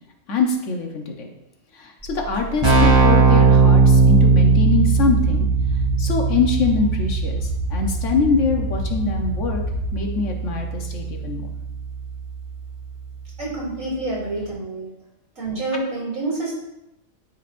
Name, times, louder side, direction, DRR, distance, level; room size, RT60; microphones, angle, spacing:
voice 1, 0.3-1.3 1.7-5.5 6.0-9.6 9.9-11.4, left 4 dB, 65° left, 2 dB, 1.3 m, -23 dB
Keyboard (musical), 2.0-2.1 2.3-12.9, right 4 dB, 20° right, 2.5 m, -19 dB
sound 1, 4.8-10.0, left 5 dB, 45° left, 1.5 m, -31 dB
voice 2, 13.4-14.9 15.3-16.5, right 2 dB, 70° right, -5 dB, 3.3 m, -27 dB
12.5 x 4.7 x 2.6 m, 0.87 s
omnidirectional pair, 1.4 m